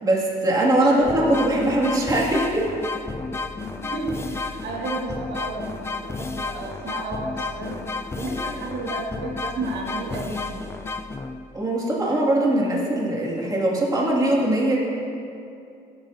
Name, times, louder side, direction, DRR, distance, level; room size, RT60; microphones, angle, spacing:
voice 1, 0.0-2.7 11.5-14.8, right 1 dB, 20° right, -4 dB, 2.2 m, -21 dB
voice 2, 0.6-1.4 3.8-5.7 6.0-7.8 8.2-10.7, right 3 dB, 80° right, -2 dB, 1.8 m, -32 dB
sound 1, 1.0-11.6, left 3 dB, 15° left, 0.4 m, -32 dB
17.0 x 9.7 x 2.7 m, 2.6 s
cardioid pair, 110°, 17 cm